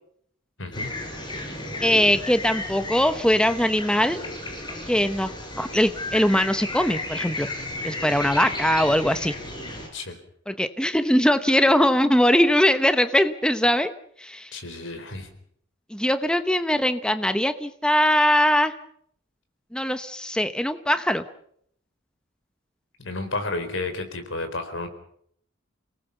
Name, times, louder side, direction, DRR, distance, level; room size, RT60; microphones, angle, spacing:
voice 1, 0.6-0.9 9.9-10.2 14.5-15.3 23.0-24.9, left 2 dB, 75° left, 7 dB, 4.5 m, -31 dB
sound 1, 0.7-9.9, left 2 dB, 25° left, 5.9 m, -34 dB
voice 2, 1.8-4.2 4.9-5.3 5.6-7.5 7.8-9.4 10.5-13.9 14.2-14.6 15.9-18.7 19.7-21.2, equal, 5° left, 10 dB, 0.9 m, -21 dB
29.0 x 19.0 x 7.1 m, 0.68 s
head